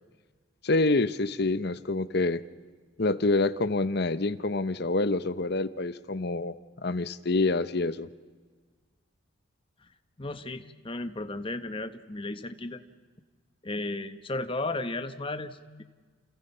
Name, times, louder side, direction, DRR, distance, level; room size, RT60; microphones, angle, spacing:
voice 1, 0.6-2.4 3.0-8.1, left 2 dB, 50° left, 14 dB, 0.8 m, -27 dB
voice 2, 10.2-12.8 13.6-15.8, left 2 dB, 25° left, 9 dB, 1.0 m, -34 dB
29.5 x 28.5 x 5.6 m, 1.5 s
head